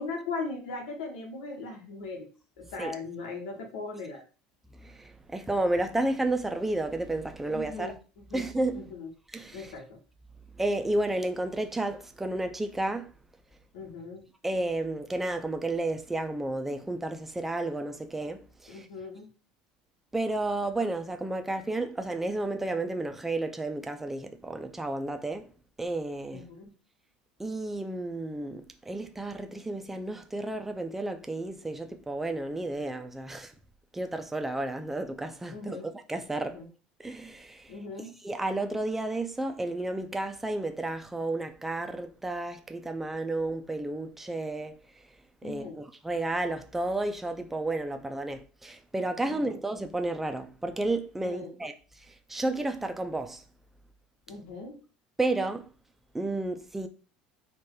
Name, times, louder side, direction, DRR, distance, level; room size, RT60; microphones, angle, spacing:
voice 1, 0.0-2.3 2.6-4.2 7.5-8.4 8.7-9.1 9.5-10.0 13.7-14.2 18.7-19.3 26.3-26.7 35.5-35.9 36.4-36.7 37.7-38.1 45.4-45.8 49.3-49.6 51.2-51.5 54.3-54.8, left 3 dB, 90° left, 1.4 m, -39 dB
voice 2, 4.8-7.9 8.3-8.8 9.3-9.7 10.5-13.1 14.4-18.9 20.1-25.5 25.8-26.5 27.4-33.5 33.9-35.8 36.1-36.6 37.0-37.7 38.2-45.0 45.4-53.4 55.2-55.7 56.1-56.9, right 2 dB, 5° right, 0.5 m, -32 dB
4.4 x 2.5 x 4.8 m
supercardioid pair, 135°, 4 cm